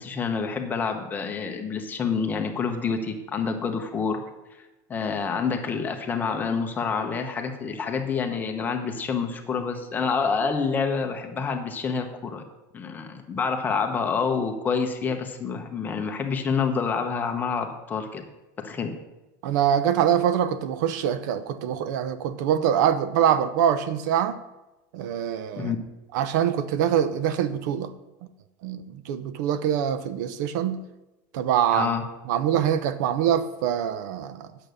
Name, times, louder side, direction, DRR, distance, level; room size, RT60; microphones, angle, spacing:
voice 1, 0.0-4.2 4.9-12.4 12.7-18.2 18.6-18.9 25.6-25.8 31.7-32.0, left 5 dB, 20° left, 1.0 m, -27 dB
voice 2, 19.4-24.4 24.9-25.7 26.1-27.9 28.6-30.8 31.3-31.9 32.3-34.5, right 9 dB, 75° right, 0.7 m, -24 dB
8.7 x 6.9 x 6.4 m
supercardioid pair, 160°, 10 cm